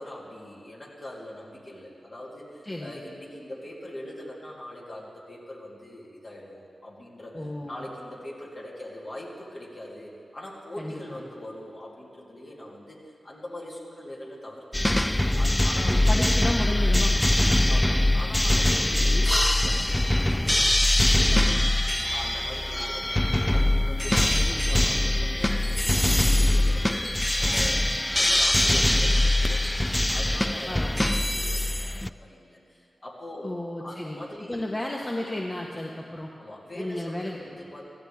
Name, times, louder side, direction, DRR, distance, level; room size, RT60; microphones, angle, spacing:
voice 1, 0.0-15.0 15.3-16.0 17.7-20.8 21.3-29.8 30.1-33.5 33.8-34.6 36.4-37.8, left 1 dB, 50° left, -5 dB, 3.0 m, -42 dB
voice 2, 7.3-7.9 10.8-11.2 15.8-17.7 18.9-19.3 21.4-21.6 30.7-31.1 33.4-34.2 34.5-36.3 36.8-37.4, left 1 dB, 30° left, -1 dB, 1.2 m, -33 dB
sound 1, 14.7-32.1, left 1 dB, 15° left, 0.3 m, -22 dB
16.5 x 14.0 x 3.6 m, 2.5 s
cardioid pair, 50°, 0 cm